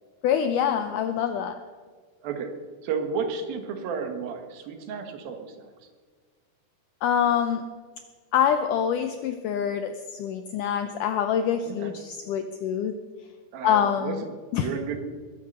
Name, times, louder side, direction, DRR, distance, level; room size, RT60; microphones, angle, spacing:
voice 1, 0.2-1.6 7.0-7.6 8.3-12.9 13.6-14.2 14.5-14.7, left 8 dB, 80° left, 8 dB, 1.9 m, -25 dB
voice 2, 2.8-5.7 11.7-11.9 13.5-14.1 14.5-15.0, right 6 dB, 70° right, 6 dB, 3.1 m, -32 dB
21.0 x 8.2 x 6.6 m, 1.6 s
omnidirectional pair, 4.4 m